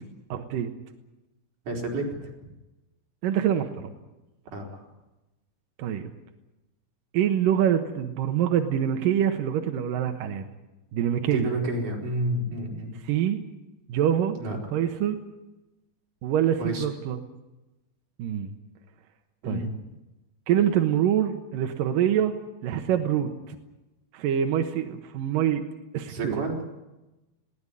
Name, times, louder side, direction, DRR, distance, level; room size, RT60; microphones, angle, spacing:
voice 1, 0.3-0.7 3.2-3.9 5.8-6.0 7.1-10.4 10.9-11.5 13.1-13.4 13.9-14.3 14.7-15.2 16.2-17.2 18.2-18.5 19.4-19.7 20.5-22.3 22.6-23.6 24.1-25.6 25.9-26.4, right 10 dB, 70° right, 5 dB, 2.2 m, -25 dB
voice 2, 1.7-2.1 4.5-4.8 11.3-12.9 14.4-14.6 16.6-16.9 19.4-19.7 26.1-26.6, right 1 dB, 45° right, -1 dB, 5.6 m, -29 dB
21.0 x 18.0 x 9.8 m, 1.0 s
omnidirectional pair, 5.5 m